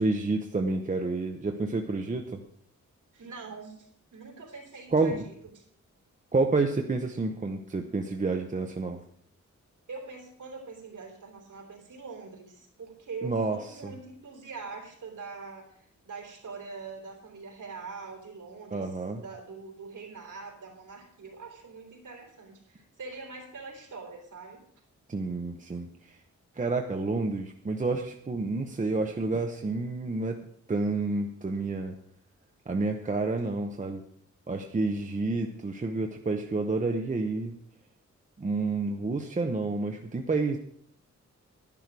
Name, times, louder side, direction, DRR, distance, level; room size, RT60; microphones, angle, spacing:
voice 1, 0.0-2.4 4.9-5.2 6.3-9.0 13.2-13.6 13.8-13.9 18.7-19.2 25.1-26.2 26.6-30.4 30.7-31.9 32.7-34.0 34.5-37.5 38.4-40.6, right 3 dB, 25° right, 4 dB, 0.7 m, -29 dB
voice 2, 3.1-5.6 9.9-24.6, right 4 dB, 85° right, 0 dB, 3.3 m, -43 dB
12.0 x 11.0 x 4.6 m, 0.64 s
wide cardioid pair, 180°, 30 cm